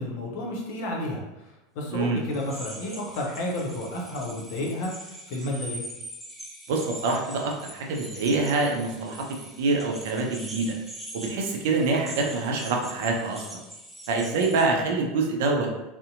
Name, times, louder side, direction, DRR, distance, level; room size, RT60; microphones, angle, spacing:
voice 1, 0.0-4.9 5.3-5.8, left 1 dB, 55° left, -1 dB, 0.6 m, -31 dB
sound 1, 2.3-14.6, right 1 dB, 5° right, 0.5 m, -42 dB
voice 2, 6.7-9.2 9.6-10.7 11.1-13.6 14.1-15.7, right 3 dB, 60° right, 1 dB, 0.4 m, -25 dB
2.6 x 2.1 x 2.5 m, 0.98 s
figure-of-eight pair, 80°, 0 cm